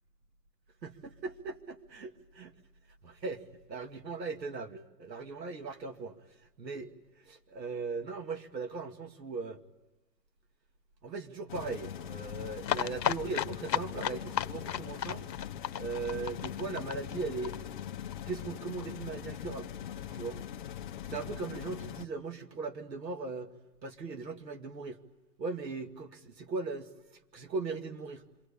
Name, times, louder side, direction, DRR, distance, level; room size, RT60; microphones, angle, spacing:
voice 1, 0.8-2.5 3.0-3.4 3.7-6.2 6.6-7.0 7.3-9.6 11.0-15.3 15.8-17.6 18.3-19.7 20.1-20.4 21.1-23.5 23.8-25.0 25.4-27.0 27.3-28.2, right 4 dB, 90° right, 2.5 m, -38 dB
sound 1, 11.5-22.0, left 10 dB, 30° left, 0.9 m, -41 dB
sound 2, 12.6-18.2 18.5-18.6 18.8-18.9 19.1-19.2, left 10 dB, 85° left, 0.9 m, -34 dB
27.0 x 23.0 x 8.7 m
hypercardioid pair, 155°, 49 cm